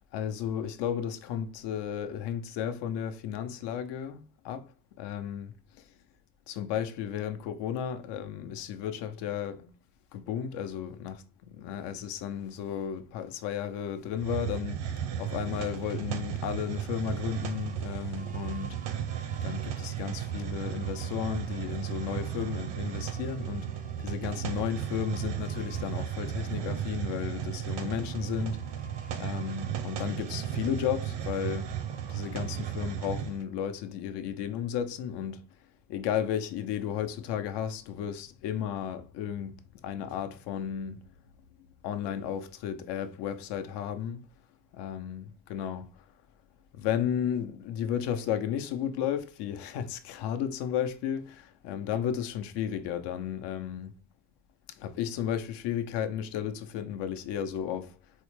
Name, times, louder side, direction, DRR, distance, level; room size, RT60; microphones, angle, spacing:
voice 1, 0.1-4.7 5.0-5.5 6.5-9.7 10.1-18.7 19.4-23.7 24.0-28.7 29.1-31.7 32.1-35.4 35.9-39.5 39.8-41.0 41.8-44.2 44.7-46.0 46.7-53.9 54.8-58.0, left 9 dB, 80° left, 0.6 m, -33 dB
Hiss, 14.2-33.4, right 9 dB, 75° right, 0.6 m, -35 dB
sound 1, 15.9-33.1, right 4 dB, 20° right, 0.4 m, -54 dB
4.0 x 2.1 x 3.0 m
cardioid pair, 120°, 41 cm